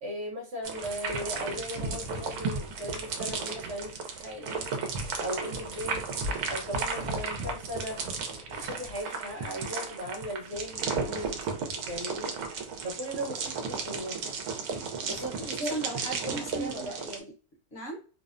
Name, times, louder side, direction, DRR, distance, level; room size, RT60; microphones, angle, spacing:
voice 1, 0.0-4.7 5.2-6.1 6.5-8.0 8.5-12.4 12.8-14.3 15.1-15.8 16.3-17.0, equal, 55° right, -1 dB, 1.1 m, -37 dB
sound 1, 0.6-17.2, right 4 dB, 80° right, 1.1 m, -34 dB
voice 2, 15.0-17.3 17.7-18.0, right 2 dB, 55° left, 0 dB, 0.9 m, -38 dB
2.7 x 2.0 x 2.4 m, 0.35 s
omnidirectional pair, 1.5 m